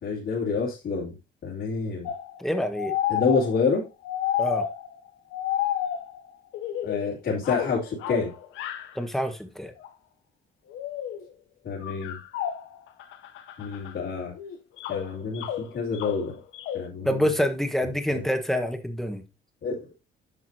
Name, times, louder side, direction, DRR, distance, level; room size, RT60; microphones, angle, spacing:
voice 1, 0.0-1.2 1.4-2.1 3.1-3.8 6.8-8.3 11.6-12.2 13.6-14.3 14.9-16.4 16.7-17.1 18.1-18.2 19.6-19.8, left 4 dB, 65° left, 2.7 m, -28 dB
sound 1, 2.1-5.0 5.3-7.1 7.4-9.0 9.8-9.9 10.7-11.2 11.8-13.9 14.4-16.9, left 10 dB, 90° left, 0.8 m, -31 dB
voice 2, 2.4-3.0 4.4-4.7 8.9-9.7 17.0-19.2, equal, ahead, 1.4 m, -26 dB
9.1 x 5.8 x 2.8 m
cardioid pair, 90°, 20 cm